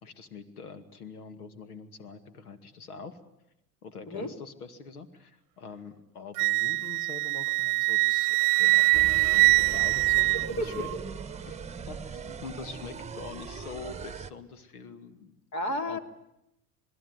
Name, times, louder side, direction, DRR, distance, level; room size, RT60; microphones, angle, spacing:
voice 1, 0.0-3.2 3.8-10.9 11.5-11.6 11.9-15.4 15.8-16.0, left 5 dB, 85° left, 9 dB, 2.3 m, -44 dB
Wind instrument woodwind instrument, 6.4-10.9, right 27 dB, 60° right, 0.9 m, -23 dB
sound 1, 8.9-14.3, right 6 dB, 15° right, 1.5 m, -40 dB
voice 2, 10.4-10.8 15.5-16.0, left 1 dB, 40° left, 7 dB, 3.3 m, -32 dB
27.5 x 20.5 x 9.6 m, 0.85 s
hypercardioid pair, 75°, 44 cm